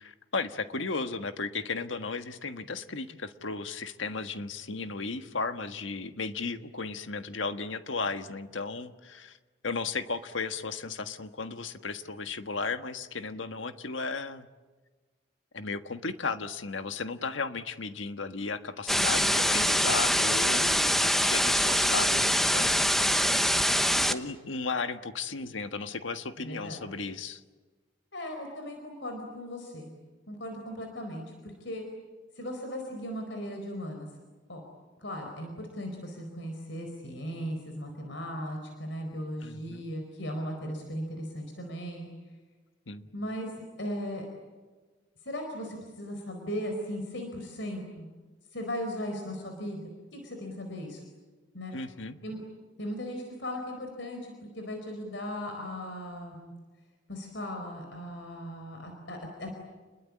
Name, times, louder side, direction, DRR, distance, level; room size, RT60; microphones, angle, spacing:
voice 1, 0.0-9.4 9.6-14.5 15.5-22.9 24.1-27.4 39.4-39.9 42.9-43.1 51.7-52.2, left 4 dB, 85° left, 9 dB, 1.5 m, -35 dB
sound 1, 18.9-24.1, equal, ahead, 1.0 m, -24 dB
voice 2, 26.4-26.8 28.1-29.9 30.3-31.9 32.3-34.1 34.5-34.6 35.0-42.1 43.1-43.5 43.8-44.3 45.2-48.1 48.5-49.8 50.1-51.0 51.5-51.7 52.2-52.4 52.8-56.5 57.1-59.6, equal, 70° left, 3 dB, 4.6 m, -37 dB
30.0 x 21.5 x 8.7 m, 1.3 s
head